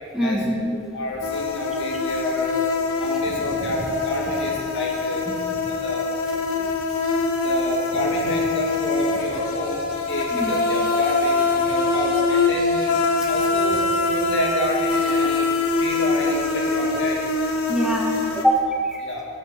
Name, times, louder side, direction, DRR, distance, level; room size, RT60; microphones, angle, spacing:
voice 1, 0.1-0.7 5.3-5.4 6.6-6.7 10.4-10.5 13.2-13.3 17.7-19.0, equal, ahead, -1 dB, 1.6 m, -23 dB
voice 2, 0.9-2.5 3.0-5.2 5.5-6.0 7.4-13.0 13.2-15.5 15.8-17.2 19.0-19.3, left 1 dB, 60° left, -2 dB, 2.3 m, -29 dB
sound 1, 1.2-18.4, left 3 dB, 90° left, 1.2 m, -23 dB
13.5 x 12.5 x 4.4 m, 2.3 s
head